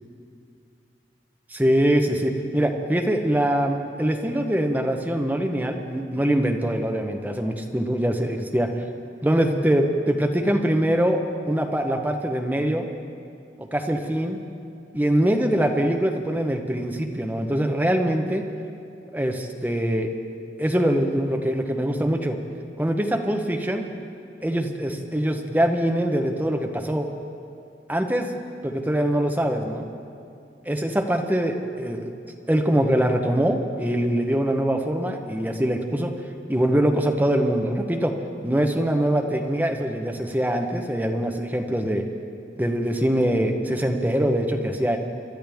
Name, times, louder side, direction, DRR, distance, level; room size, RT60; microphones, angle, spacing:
voice 1, 1.5-8.7 9.2-12.9 13.6-14.4 14.9-18.4 19.1-20.1 20.6-22.4 22.8-23.9 24.4-27.1 27.9-28.3 28.6-29.8 30.6-32.1 32.5-36.1 36.5-38.1 38.4-42.0 42.6-45.0, right 1 dB, 10° right, 3 dB, 0.9 m, -23 dB
26.0 x 12.0 x 3.5 m, 2.5 s
head